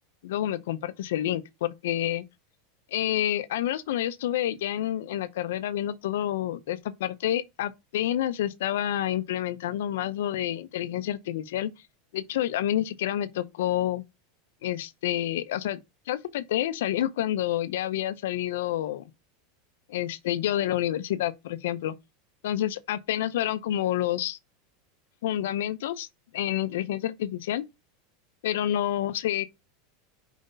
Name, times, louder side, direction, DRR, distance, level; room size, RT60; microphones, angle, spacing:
voice 1, 0.2-2.2 2.9-11.7 12.1-14.0 14.6-15.8 16.1-19.0 19.9-21.9 22.4-24.4 25.2-26.1 26.3-27.6 28.4-29.5, left 12 dB, 80° left, 0.8 m, -28 dB
5.1 x 3.9 x 5.4 m
supercardioid pair, 155°, 0 cm